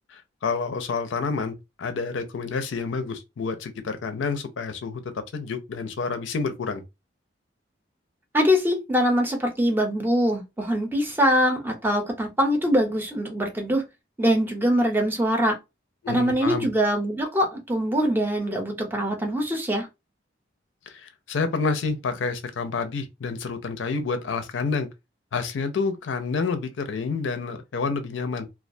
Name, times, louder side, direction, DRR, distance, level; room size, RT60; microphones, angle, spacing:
voice 1, 0.1-6.8 16.0-16.7 20.9-24.9 25.3-28.5, left 4 dB, 80° left, 0.5 m, -29 dB
voice 2, 8.3-13.8 14.2-15.6 16.1-19.9, equal, 10° right, 0.5 m, -23 dB
2.3 x 2.2 x 2.5 m
head